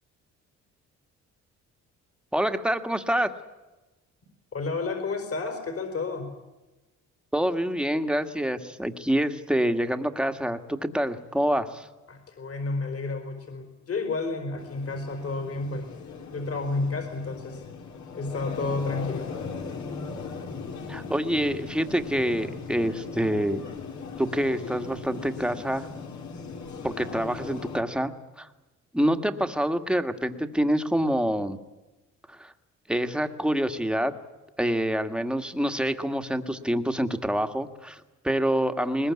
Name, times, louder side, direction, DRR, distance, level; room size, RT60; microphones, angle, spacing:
voice 1, 2.3-3.3 7.3-11.9 20.9-23.6 24.2-25.9 26.8-28.1 28.4-28.5 28.9-31.6 32.3-32.5 32.9-34.1 34.6-39.1, equal, 5° right, 8 dB, 1.7 m, -26 dB
voice 2, 4.5-6.3 12.1-15.9 16.3-17.6 18.1-19.3, left 3 dB, 50° left, 6 dB, 4.6 m, -31 dB
sound 1, 14.6-27.8, left 5 dB, 70° left, 3.5 m, -38 dB
21.5 x 20.5 x 9.7 m, 1.1 s
cardioid pair, 90°, 30 cm